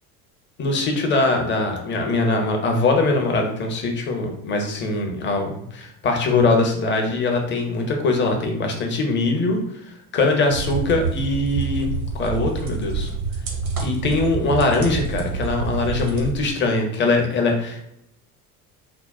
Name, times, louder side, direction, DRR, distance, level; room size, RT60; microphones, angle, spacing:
voice 1, 0.6-13.1 13.8-17.8, left 3 dB, 25° left, 3 dB, 0.6 m, -22 dB
sound 1, 10.5-16.3, right 5 dB, 70° right, 0.8 m, -27 dB
3.8 x 2.0 x 2.3 m, 0.78 s
figure-of-eight pair, 65°, 45 cm